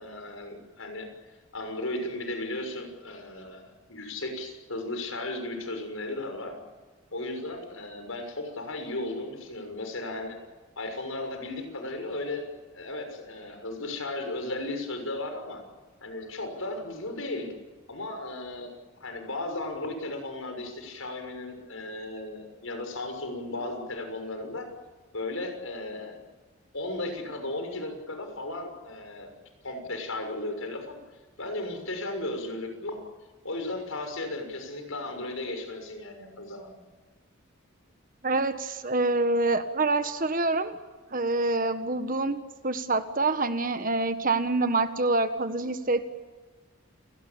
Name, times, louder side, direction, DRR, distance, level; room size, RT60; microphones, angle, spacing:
voice 1, 0.0-6.6 7.1-10.4 10.8-15.6 16.0-17.5 17.9-18.7 19.0-24.7 25.1-26.2 26.7-29.3 29.6-31.0 31.4-33.0 33.4-36.8, left 2 dB, 80° left, 5 dB, 6.4 m, -35 dB
voice 2, 38.2-40.8 41.1-46.1, right 2 dB, 40° right, 10 dB, 1.5 m, -26 dB
29.0 x 19.0 x 8.7 m, 1.3 s
head